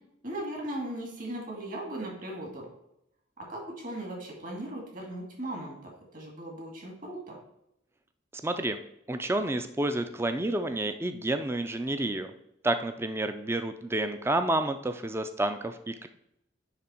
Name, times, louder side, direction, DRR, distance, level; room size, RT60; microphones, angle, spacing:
voice 1, 0.2-2.7 3.4-5.7 6.1-7.4, right 1 dB, 45° right, -1 dB, 2.3 m, -37 dB
voice 2, 8.3-8.8 9.1-12.3 12.6-16.1, right 1 dB, 15° right, 8 dB, 0.4 m, -30 dB
9.9 x 3.4 x 4.4 m, 0.80 s
head